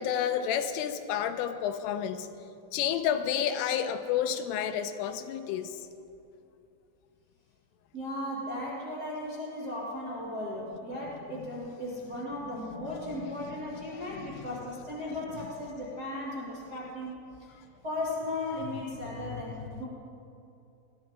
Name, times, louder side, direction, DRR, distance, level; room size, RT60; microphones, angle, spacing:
voice 1, 0.0-2.3 2.7-5.8 14.1-14.3 19.2-19.4, left 9 dB, 90° left, 8 dB, 3.2 m, -30 dB
voice 2, 7.9-17.5 17.8-19.8, left 1 dB, 35° right, -6 dB, 1.6 m, -36 dB
21.0 x 13.5 x 5.1 m, 2.7 s
omnidirectional pair, 5.8 m